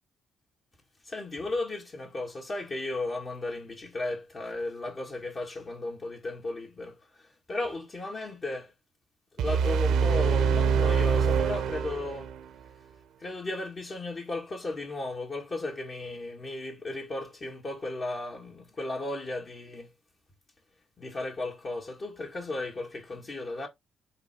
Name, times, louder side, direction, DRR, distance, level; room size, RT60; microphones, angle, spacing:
voice 1, 1.0-8.7 9.4-12.3 13.2-19.9 21.0-23.7, left 2 dB, 40° left, 2.1 m, -35 dB
sound 1, 9.4-12.4, right 6 dB, 80° right, 1.0 m, -25 dB
8.0 x 3.4 x 4.3 m
cardioid pair, 90°, 0 cm